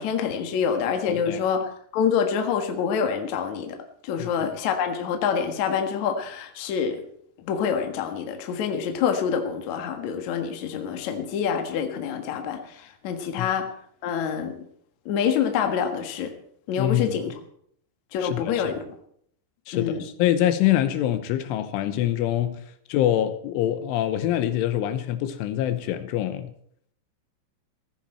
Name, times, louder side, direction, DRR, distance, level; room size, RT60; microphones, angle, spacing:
voice 1, 0.0-3.8 4.0-7.0 7.4-13.7 14.0-14.5 15.1-16.3 16.7-17.3 18.1-18.8 19.7-20.0, left 7 dB, 60° left, 5 dB, 2.0 m, -26 dB
voice 2, 1.1-1.4 4.2-4.3 13.4-13.5 16.8-17.2 18.2-18.7 19.7-22.6 22.9-26.5, left 12 dB, 85° left, 11 dB, 3.5 m, -25 dB
16.5 x 14.5 x 4.4 m, 0.66 s
omnidirectional pair, 5.5 m